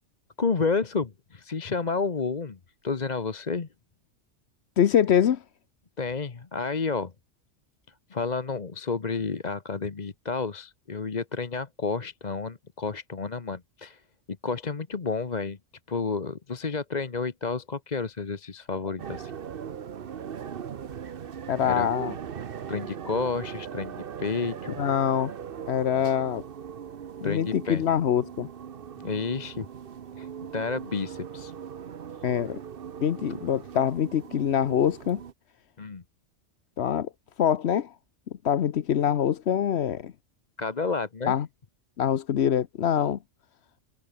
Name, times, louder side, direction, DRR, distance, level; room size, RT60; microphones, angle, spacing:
voice 1, 0.4-3.7 6.0-7.1 8.1-14.0 14.4-15.6 15.9-19.3 21.6-21.9 22.7-24.8 27.2-27.8 29.0-29.7 30.2-31.5 35.8-36.0 40.6-41.3, left 4 dB, 35° left, 1.2 m, -30 dB
voice 2, 4.8-5.4 21.5-22.2 24.8-25.3 25.7-26.4 27.2-28.5 32.2-32.6 33.0-35.2 36.8-37.1 37.4-37.9 38.4-40.1 41.3-41.5 42.0-43.2, left 9 dB, 65° left, 1.0 m, -24 dB
sound 1, 19.0-35.3, right 8 dB, 50° right, 1.0 m, -39 dB
omnidirectional pair, 1.3 m